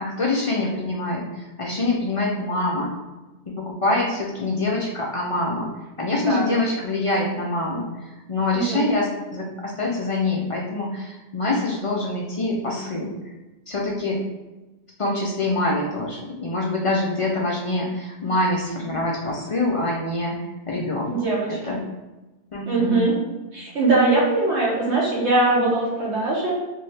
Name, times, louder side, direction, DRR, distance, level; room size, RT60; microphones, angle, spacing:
voice 1, 0.0-2.9 3.5-5.7 6.0-13.1 13.7-14.2 15.0-20.4 20.7-21.1 21.5-21.8 22.5-23.1, left 2 dB, 55° left, -3 dB, 0.3 m, -25 dB
voice 2, 8.5-8.9 21.1-21.8 22.7-23.1 23.5-26.6, right 2 dB, 85° right, -5 dB, 1.2 m, -21 dB
2.7 x 2.6 x 3.2 m, 1.1 s
omnidirectional pair, 1.1 m